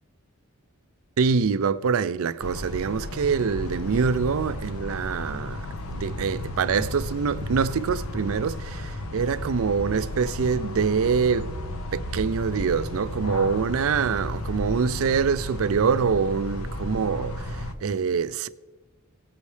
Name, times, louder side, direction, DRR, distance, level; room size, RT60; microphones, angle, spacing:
voice 1, 1.2-11.5 11.9-18.5, right 5 dB, 70° right, 0.4 m, -25 dB
sound 1, 2.4-17.7, left 1 dB, 75° left, 0.9 m, -33 dB
17.5 x 8.3 x 3.3 m
head